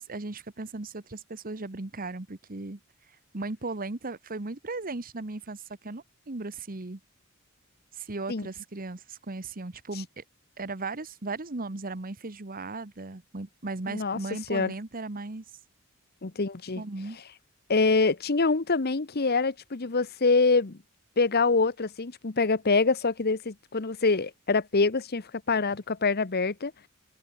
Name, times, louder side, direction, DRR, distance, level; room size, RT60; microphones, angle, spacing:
voice 1, 0.0-2.8 3.3-7.0 7.9-10.2 10.6-15.4 16.8-17.2, right 3 dB, 40° right, 1.2 m, -36 dB
voice 2, 13.9-14.2 14.5-14.7 16.2-16.8 17.7-20.8 21.2-26.7, left 4 dB, 45° left, 1.0 m, -25 dB
head